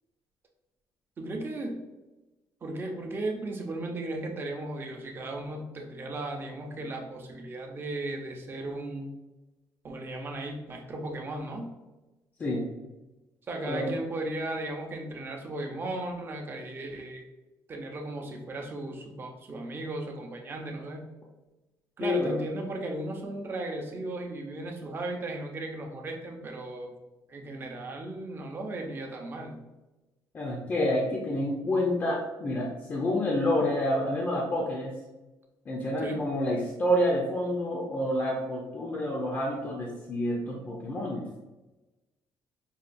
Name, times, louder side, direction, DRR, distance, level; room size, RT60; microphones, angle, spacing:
voice 1, 1.2-1.8 2.6-9.1 9.8-11.7 13.5-17.2 17.7-21.1 22.0-26.9 27.3-29.6 36.0-36.2, right 2 dB, 30° right, 2 dB, 0.6 m, -36 dB
voice 2, 22.0-22.4 30.3-34.9 35.7-41.3, left 1 dB, 30° left, -2 dB, 0.5 m, -28 dB
5.5 x 2.3 x 2.5 m, 1.1 s
cardioid pair, 155°, 8 cm